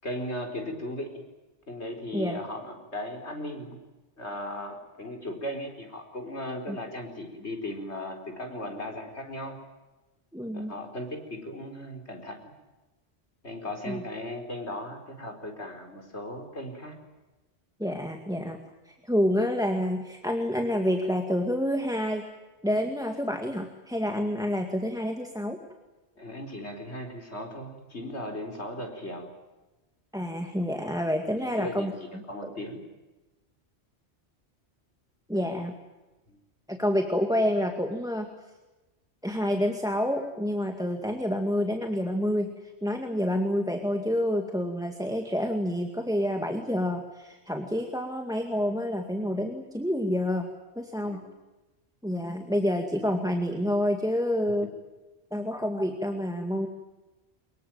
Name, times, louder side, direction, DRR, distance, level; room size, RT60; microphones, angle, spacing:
voice 1, 0.0-1.2 1.7-3.8 4.2-9.6 10.5-12.4 13.4-17.0 26.2-29.3 31.3-32.8 36.3-36.4 51.1-51.3, left 1 dB, 80° left, 4 dB, 4.9 m, -37 dB
voice 2, 10.3-10.7 13.9-14.0 17.8-18.6 18.9-22.2 22.6-25.6 30.1-32.5 35.3-35.8 36.7-38.3 39.2-42.5 42.8-50.5 50.8-51.2 52.0-54.7 55.3-56.7, equal, 5° right, 4 dB, 2.0 m, -28 dB
24.5 x 22.0 x 9.2 m, 1.1 s
omnidirectional pair, 1.1 m